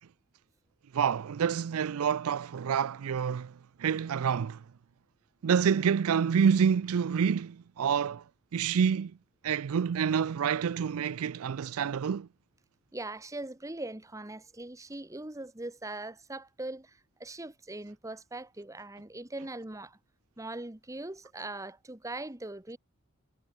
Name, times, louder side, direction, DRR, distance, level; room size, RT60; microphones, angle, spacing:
voice 1, 0.9-3.5 3.8-4.6 5.4-8.2 8.5-9.1 9.4-12.3, right 7 dB, 70° right, 0.4 m, -27 dB
voice 2, 12.9-20.0 20.4-22.8, right 2 dB, 15° right, 1.0 m, -41 dB
head